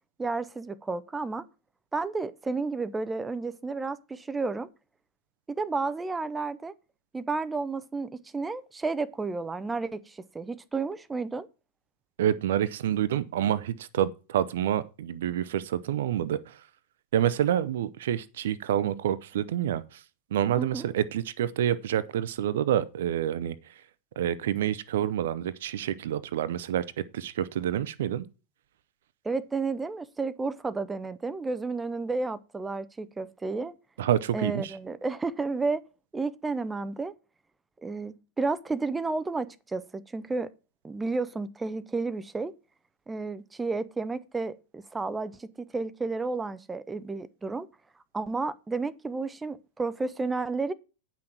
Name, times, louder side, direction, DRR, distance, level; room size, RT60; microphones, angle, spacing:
voice 1, 0.2-1.5 1.9-4.7 5.5-6.7 7.1-11.5 20.6-20.9 29.2-33.7 34.3-35.8 36.1-37.1 37.8-40.5 40.8-42.5 43.1-47.7 48.1-50.7, right 3 dB, 10° right, 0.7 m, -32 dB
voice 2, 12.2-16.6 17.1-20.0 20.3-23.5 24.2-26.8 27.1-28.2 34.0-34.7, right 10 dB, 60° right, 0.6 m, -28 dB
9.8 x 6.1 x 6.0 m
figure-of-eight pair, 90°, 0 cm